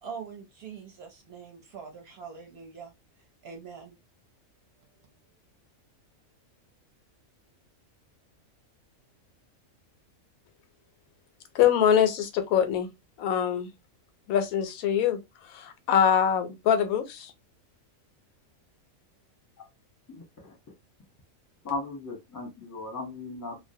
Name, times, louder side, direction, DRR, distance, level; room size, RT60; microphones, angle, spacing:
voice 1, 0.0-2.9 3.4-4.0, right 6 dB, 55° right, 0.8 m, -43 dB
voice 2, 11.5-12.9 13.2-13.7 14.3-17.3, left 9 dB, 90° left, 1.0 m, -24 dB
voice 3, 20.1-20.5 21.6-23.6, left 3 dB, 20° left, 0.6 m, -37 dB
2.4 x 2.0 x 2.6 m
omnidirectional pair, 1.4 m